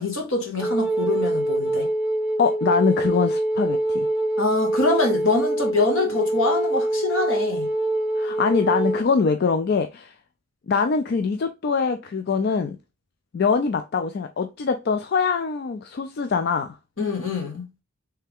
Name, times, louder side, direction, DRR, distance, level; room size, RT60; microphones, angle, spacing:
voice 1, 0.0-1.9 4.4-7.7 17.0-17.7, left 3 dB, 70° left, 1.4 m, -24 dB
Wind instrument woodwind instrument, 0.6-9.0, right 1 dB, 5° right, 0.6 m, -24 dB
voice 2, 2.4-4.1 8.2-10.1 10.7-12.8 13.3-16.8, left 5 dB, 50° left, 0.3 m, -23 dB
3.3 x 3.3 x 3.4 m
head